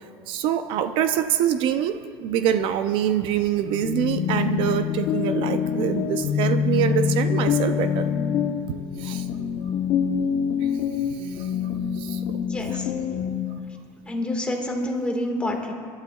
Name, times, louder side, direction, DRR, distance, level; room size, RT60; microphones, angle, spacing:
voice 1, 0.3-8.0 8.7-9.2 11.3-11.5 12.0-12.4 12.7-12.8, right 10 dB, 60° right, 9 dB, 0.5 m, -25 dB
addin extra, 3.6-13.6, left 7 dB, 55° left, 0.8 m, -25 dB
voice 2, 12.4-12.9 14.1-15.7, left 1 dB, 10° left, 0 dB, 1.7 m, -28 dB
28.5 x 12.0 x 2.3 m, 2.2 s
cardioid pair, 160°, 10 cm